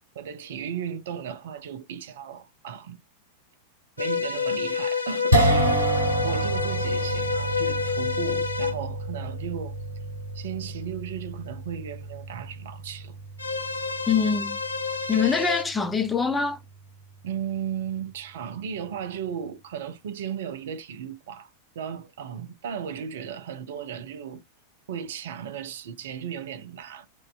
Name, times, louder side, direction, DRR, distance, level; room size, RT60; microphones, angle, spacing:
voice 1, 0.2-3.0 4.0-9.8 10.3-13.2 17.2-21.5 21.8-24.4 24.9-27.1, right 8 dB, 60° right, 0.4 m, -35 dB
sound 1, 4.0-8.8 13.4-15.6, left 5 dB, 80° left, 0.4 m, -29 dB
sound 2, 5.3-17.6, right 1 dB, 80° right, 0.8 m, -29 dB
voice 2, 14.1-14.6 15.1-16.6, left 5 dB, 10° left, 0.4 m, -24 dB
2.6 x 2.1 x 2.3 m
figure-of-eight pair, 90°, 0 cm